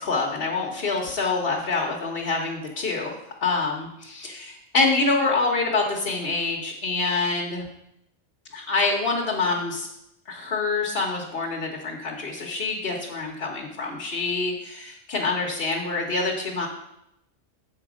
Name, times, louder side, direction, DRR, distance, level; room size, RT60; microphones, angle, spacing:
voice 1, 0.0-3.1 3.4-7.6 8.5-9.9 10.3-16.7, left 3 dB, 50° left, -1 dB, 1.2 m, -26 dB
7.7 x 4.5 x 6.1 m, 0.82 s
omnidirectional pair, 1.4 m